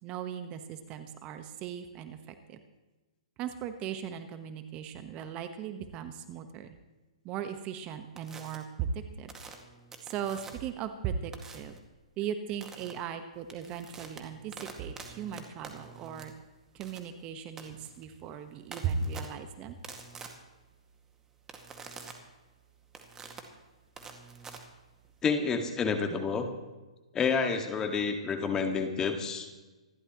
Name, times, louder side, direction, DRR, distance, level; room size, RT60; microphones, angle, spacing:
voice 1, 0.0-2.6 3.4-6.7 7.2-9.3 10.0-11.7 12.2-16.3 16.7-19.8, right 7 dB, 30° right, 8 dB, 1.2 m, -37 dB
sound 1, 8.2-8.6 9.3-10.8 11.3-11.8 12.6-12.9 13.3-25.2, right 5 dB, 15° right, 1.9 m, -48 dB
voice 2, 25.2-26.5 27.1-29.5, left 5 dB, 15° left, 5 dB, 1.8 m, -29 dB
26.5 x 12.5 x 3.0 m, 1.2 s
hypercardioid pair, 135°, 4 cm